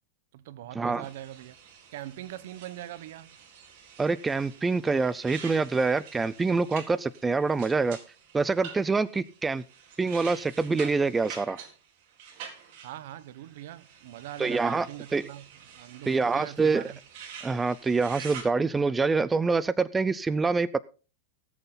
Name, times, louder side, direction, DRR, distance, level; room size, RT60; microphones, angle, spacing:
voice 1, 0.3-1.6 1.9-3.3 12.8-17.0, right 13 dB, 65° right, 1.1 m, -42 dB
sound 1, 1.0-18.4, right 7 dB, 50° right, 4.0 m, -47 dB
voice 2, 4.0-8.0 8.3-9.6 10.0-11.6 14.4-14.9 15.1-15.2 16.1-16.8 17.4-20.8, right 4 dB, 10° right, 0.5 m, -26 dB
18.0 x 8.0 x 4.0 m
supercardioid pair, 135°, 0 cm